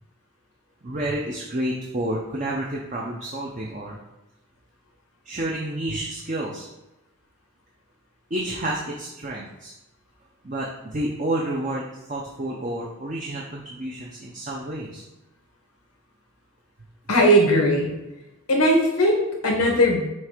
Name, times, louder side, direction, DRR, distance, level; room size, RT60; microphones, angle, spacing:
voice 1, 0.8-4.0 5.2-6.7 8.3-9.7 10.4-15.0, right 1 dB, 35° right, -3 dB, 0.7 m, -30 dB
voice 2, 17.1-17.9 18.5-20.1, equal, 90° left, 0 dB, 1.6 m, -19 dB
6.4 x 3.3 x 5.1 m, 0.99 s
head